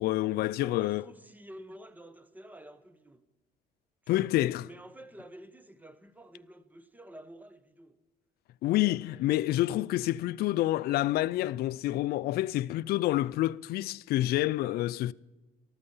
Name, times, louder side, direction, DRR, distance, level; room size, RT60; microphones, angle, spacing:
voice 1, 0.0-1.0 4.1-4.7 8.6-15.1, left 15 dB, 65° left, 0.4 m, -28 dB
voice 2, 0.6-3.2 4.0-4.4 4.6-8.0 8.6-9.3, right 1 dB, 10° right, 1.0 m, -50 dB
14.0 x 13.0 x 5.5 m
cardioid pair, 110°, 17 cm